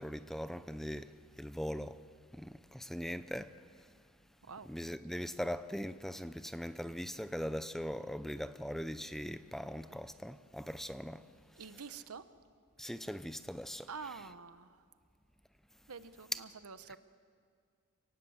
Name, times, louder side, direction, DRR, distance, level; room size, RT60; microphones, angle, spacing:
voice 1, 0.0-2.0 2.3-3.9 4.6-11.2 11.6-11.8 12.8-14.2 16.3-16.4 16.9-17.0, equal, ahead, 0.5 m, -41 dB
voice 2, 11.6-12.2 13.9-14.7 15.9-17.0, right 5 dB, 80° right, 1.0 m, -47 dB
27.5 x 18.5 x 8.0 m
head